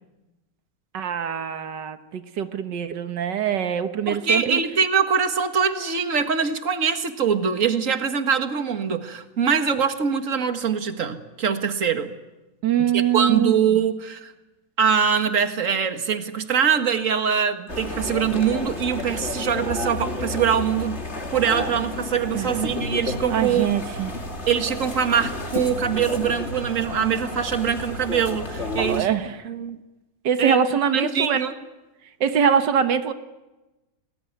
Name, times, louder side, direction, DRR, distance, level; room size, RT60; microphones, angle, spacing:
voice 1, 0.9-4.6 12.6-13.8 22.3-22.5 23.3-24.1 28.8-29.4 30.2-31.4 32.2-33.1, right 8 dB, 90° right, 9 dB, 1.9 m, -23 dB
voice 2, 4.1-12.1 12.8-14.3 14.8-21.0 21.3-23.7 24.5-29.1 29.4-29.8 30.4-30.6 30.9-31.5, right 7 dB, 50° right, 8 dB, 2.1 m, -23 dB
sound 1, 17.7-29.0, left 2 dB, 40° left, 2.9 m, -31 dB
29.5 x 21.0 x 9.5 m, 1.1 s
omnidirectional pair, 1.8 m